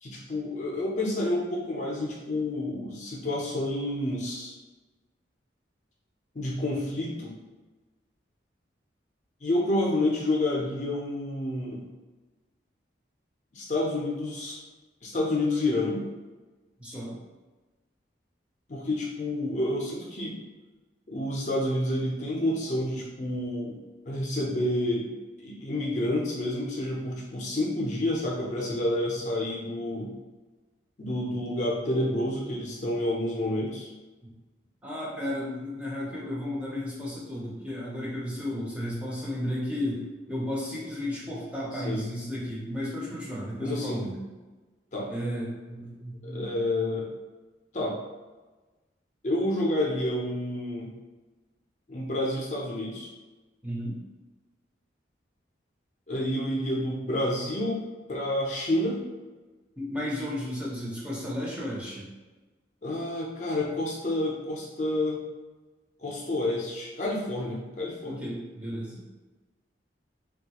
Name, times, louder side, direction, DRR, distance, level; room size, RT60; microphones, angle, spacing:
voice 1, 0.0-4.5 6.3-7.3 9.4-11.9 13.5-14.6 15.0-16.0 18.7-20.4 21.1-23.8 24.1-25.1 25.4-30.1 31.0-33.9 41.7-42.0 43.6-44.0 44.9-45.1 46.2-47.1 47.7-48.0 49.2-50.9 51.9-53.1 56.1-59.0 62.8-65.2 66.0-68.2, left 1 dB, 40° left, -3 dB, 0.5 m, -29 dB
voice 2, 16.8-17.2 34.8-44.2 45.1-46.4 53.6-54.0 59.8-62.1 68.0-69.0, left 1 dB, 5° right, -6 dB, 0.5 m, -33 dB
3.1 x 2.3 x 2.8 m, 1.2 s
head